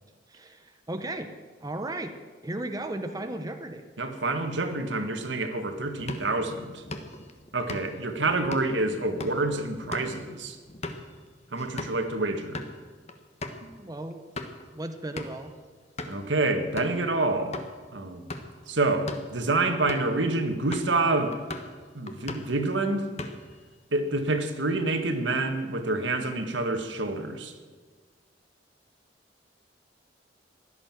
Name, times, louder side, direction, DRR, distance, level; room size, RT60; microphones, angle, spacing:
voice 1, 0.3-1.3 1.6-2.2 2.4-3.8 13.8-14.2 14.7-15.5, right 1 dB, 20° right, 6 dB, 0.9 m, -35 dB
voice 2, 4.0-6.8 7.5-10.6 11.5-12.6 13.6-13.7 16.1-17.6 17.9-18.3 18.7-21.4 21.9-23.1 23.9-27.5, right 2 dB, 80° right, 6 dB, 1.7 m, -27 dB
sound 1, 6.0-12.0 12.4-12.7 13.1-13.2 13.4-13.6 14.1-14.6 15.2-15.5 16.0-16.3 16.8-17.0 17.5-17.7 18.2-18.6 18.9-19.3 19.9-20.2 20.7-21.0 21.3-21.8 22.1-22.6 22.9-23.6, left 2 dB, 35° left, 1.3 m, -38 dB
16.0 x 11.5 x 7.5 m, 1.5 s
head